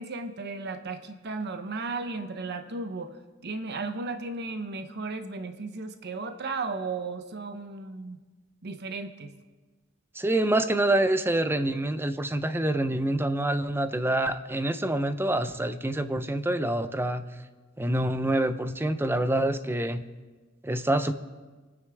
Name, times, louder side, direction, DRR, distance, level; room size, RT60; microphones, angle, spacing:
voice 1, 0.0-8.2 8.6-9.3, right 3 dB, 55° right, 8 dB, 0.8 m, -35 dB
voice 2, 10.2-17.3 17.8-20.0 20.6-21.1, right 1 dB, 10° right, 10 dB, 0.6 m, -26 dB
26.0 x 9.6 x 3.5 m, 1.3 s
head